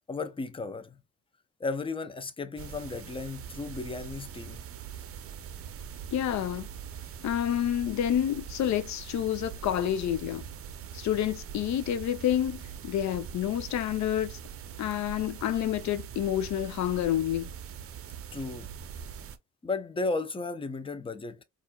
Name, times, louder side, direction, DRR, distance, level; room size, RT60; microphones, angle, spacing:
voice 1, 0.1-1.0 1.6-4.6 18.3-18.7 19.6-21.4, left 3 dB, 20° left, 0.6 m, -34 dB
sound 1, 2.6-19.4, right 8 dB, 50° right, 0.6 m, -42 dB
voice 2, 6.1-6.7 7.2-10.4 10.9-14.4 14.8-17.5, left 11 dB, 70° left, 0.6 m, -29 dB
4.2 x 2.5 x 2.2 m
cardioid pair, 90°, 30 cm